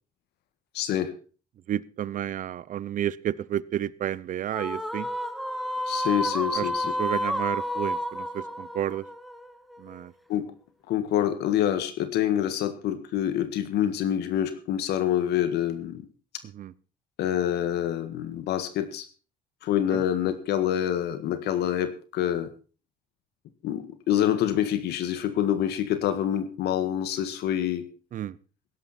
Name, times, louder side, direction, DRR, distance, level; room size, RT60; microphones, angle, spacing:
voice 1, 0.7-1.1 5.9-6.9 10.3-10.5 10.9-16.1 17.2-19.0 19.6-22.5 23.6-27.9, left 10 dB, 75° left, 10 dB, 1.7 m, -26 dB
voice 2, 1.7-5.1 6.5-6.7 7.0-9.0 9.8-10.1 16.5-16.7 19.9-20.0 28.1-28.3, right 11 dB, 50° right, 21 dB, 0.7 m, -31 dB
sound 1, 4.5-10.0, equal, ahead, 1.1 m, -30 dB
16.5 x 11.5 x 4.3 m, 0.35 s
cardioid pair, 110°, 17 cm